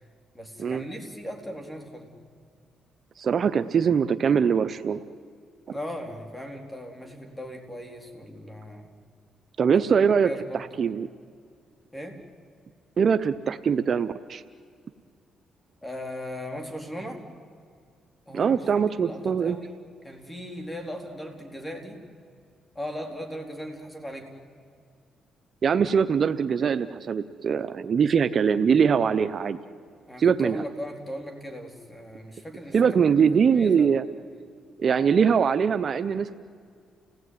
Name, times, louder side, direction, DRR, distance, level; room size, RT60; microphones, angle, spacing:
voice 1, 0.3-2.1 5.7-8.9 10.2-10.7 11.9-12.2 15.8-17.3 18.3-18.7 18.9-19.8 20.0-22.0 22.7-24.3 30.1-33.0 33.3-33.9, equal, 10° left, 4 dB, 3.9 m, -38 dB
voice 2, 3.2-5.0 9.6-11.1 13.0-14.4 18.3-19.6 25.6-29.6 30.2-30.6 32.7-34.0 34.8-36.4, right 6 dB, 50° right, 12 dB, 0.8 m, -22 dB
30.0 x 18.0 x 9.5 m, 2.2 s
cardioid pair, 90°, 0 cm